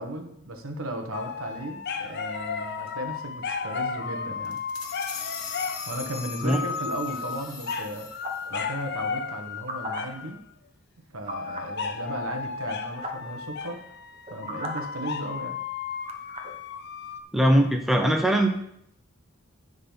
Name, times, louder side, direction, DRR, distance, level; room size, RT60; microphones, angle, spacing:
voice 1, 0.0-4.6 5.8-10.4 11.1-13.8 14.3-15.6, right 1 dB, 75° right, 5 dB, 1.2 m, -36 dB
sound 1, 1.1-10.4 11.3-17.2, left 5 dB, 50° left, 0.6 m, -34 dB
sound 2, 4.4-8.5, left 6 dB, 75° left, 1.3 m, -40 dB
sound 3, 8.2-8.5 9.5-10.0 11.3-11.7 12.7-12.8 13.0-13.3 14.1-14.8 16.1-16.5, right 1 dB, 30° right, 1.0 m, -36 dB
voice 2, 17.3-18.5, right 1 dB, ahead, 3 dB, 0.6 m, -21 dB
10.5 x 4.0 x 5.6 m, 0.75 s
head